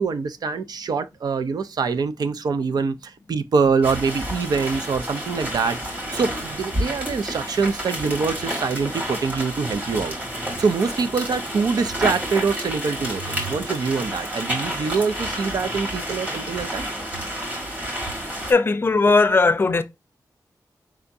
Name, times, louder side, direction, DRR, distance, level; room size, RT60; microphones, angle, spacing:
voice 1, 0.0-16.8, right 5 dB, 75° right, 0.5 m, -24 dB
sound 1, 3.8-18.5, equal, 25° right, 2.0 m, -30 dB
voice 2, 18.5-19.8, left 3 dB, 35° left, 0.5 m, -17 dB
4.9 x 3.4 x 2.6 m
wide cardioid pair, 180°, 7 cm